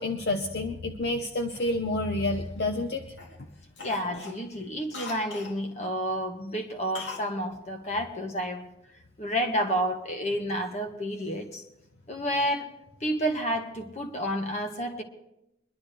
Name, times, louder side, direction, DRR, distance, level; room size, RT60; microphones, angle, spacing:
voice 1, 0.0-3.0, left 2 dB, 55° left, 4 dB, 0.8 m, -29 dB
Cough, 1.6-2.8 3.2-3.4 3.8-5.6 6.9-7.3 7.6-7.7, left 4 dB, 85° left, 2.1 m, -41 dB
voice 2, 3.8-8.6 9.2-11.7 12.1-12.7 13.0-15.0, equal, 35° left, 4 dB, 1.5 m, -30 dB
23.0 x 11.5 x 3.3 m, 0.86 s
head